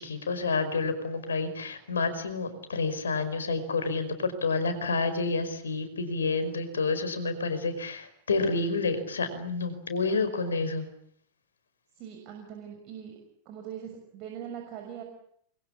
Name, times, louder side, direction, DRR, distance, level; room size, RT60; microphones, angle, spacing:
voice 1, 0.0-10.9, left 3 dB, 70° left, 10 dB, 5.1 m, -29 dB
voice 2, 12.0-13.1 13.4-15.0, right 9 dB, 40° right, 3 dB, 6.1 m, -41 dB
28.5 x 22.5 x 8.6 m, 0.67 s
figure-of-eight pair, 90°, 0 cm